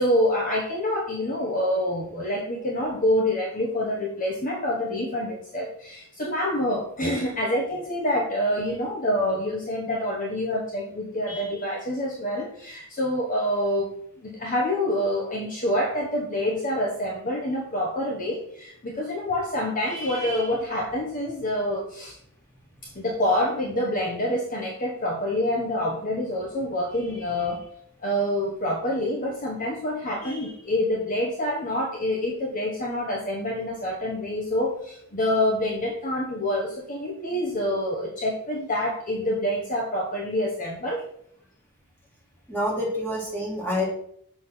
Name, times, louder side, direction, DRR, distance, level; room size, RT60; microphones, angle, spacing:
voice 1, 0.0-13.9 14.2-22.2 22.8-27.7 28.0-41.0, left 1 dB, 35° left, -1 dB, 1.1 m, -27 dB
voice 2, 42.5-43.8, left 1 dB, 10° left, -4 dB, 2.9 m, -27 dB
6.3 x 5.8 x 6.1 m, 0.68 s
head